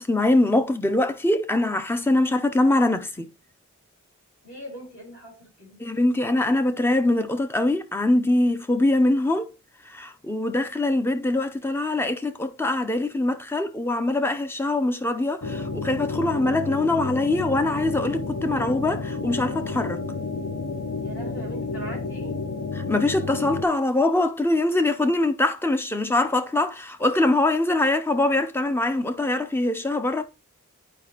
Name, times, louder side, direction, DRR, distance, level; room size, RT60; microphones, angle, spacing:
voice 1, 0.0-3.3 5.8-9.5 9.9-20.0 22.9-30.2, left 2 dB, 10° left, 0.5 m, -23 dB
voice 2, 4.4-5.8 21.0-22.4, right 1 dB, 55° left, 3.8 m, -40 dB
sound 1, 15.4-23.6, left 3 dB, 75° left, 0.8 m, -31 dB
10.0 x 4.9 x 2.9 m
head